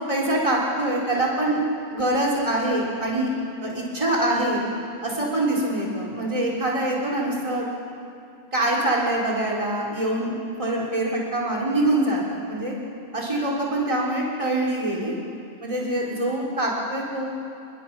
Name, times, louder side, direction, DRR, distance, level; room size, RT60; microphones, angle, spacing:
voice 1, 0.1-1.6 1.9-3.3 3.6-4.6 5.0-7.7 8.5-10.3 10.6-12.8 13.1-15.1 15.6-17.3, right 1 dB, 25° right, -4 dB, 3.8 m, -24 dB
27.5 x 23.0 x 6.1 m, 2.7 s
omnidirectional pair, 1.3 m